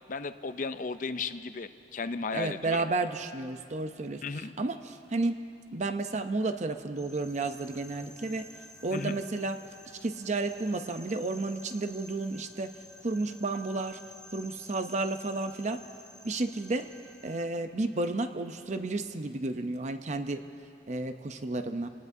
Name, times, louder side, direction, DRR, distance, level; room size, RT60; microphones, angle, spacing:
voice 1, 0.1-2.8 4.2-4.5 8.9-9.2, left 4 dB, 50° left, 10 dB, 0.5 m, -35 dB
voice 2, 2.3-4.2 4.6-5.4 5.7-8.5 8.8-9.6 10.0-12.7 13.0-14.0 14.3-15.8 16.2-16.9 17.2-20.4 20.9-21.9, right 2 dB, 40° right, 8 dB, 0.6 m, -32 dB
sound 1, 6.9-17.5, left 1 dB, 5° left, 1.3 m, -52 dB
28.0 x 19.0 x 2.7 m, 2.6 s
head